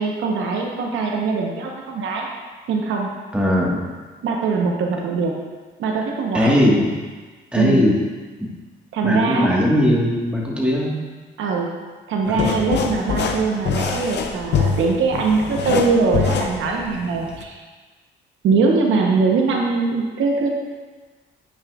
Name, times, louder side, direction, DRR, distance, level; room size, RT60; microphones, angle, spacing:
voice 1, 0.0-2.3 2.7-3.1 4.2-5.3 5.8-6.6 7.5-7.8 8.9-9.6 11.4-11.7 12.1-17.6 18.4-20.5, right 4 dB, 80° right, 0 dB, 0.9 m, -21 dB
voice 2, 3.3-3.9 6.3-6.9 7.5-8.0 9.0-11.0 12.3-12.5, left 1 dB, 5° right, -3 dB, 1.4 m, -19 dB
sound 1, 12.3-17.4, left 6 dB, 60° left, 0.6 m, -24 dB
7.9 x 6.3 x 2.4 m, 1.4 s
cardioid pair, 90°, 20 cm